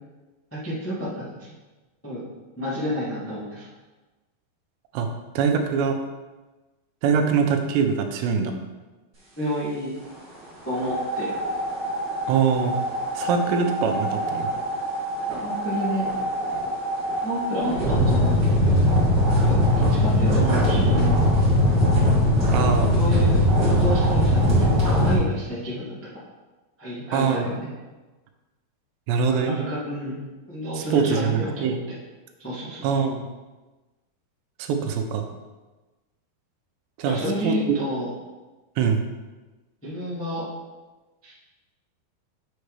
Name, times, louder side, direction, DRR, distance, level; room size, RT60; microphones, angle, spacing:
voice 1, 0.5-1.5 2.0-2.3 2.6-3.7 9.3-10.0 10.6-11.4 15.4-16.1 17.1-18.5 19.3-21.2 23.0-25.9 26.8-27.7 29.3-30.2 30.5-31.7 32.4-32.8 37.0-38.1 39.8-40.5 41.2-41.3, equal, 20° left, -9 dB, 0.3 m, -30 dB
voice 2, 5.4-6.0 7.0-8.5 12.3-12.7 13.2-14.5 22.5-22.9 27.1-27.5 29.1-29.6 30.8-31.8 32.8-33.2 34.6-35.3 37.0-37.6 38.8-39.0, right 6 dB, 85° right, 5 dB, 2.9 m, -23 dB
sound 1, 10.8-25.1, equal, 30° right, 2.3 m, -21 dB
6.9 x 6.6 x 3.3 m, 1.2 s
omnidirectional pair, 4.9 m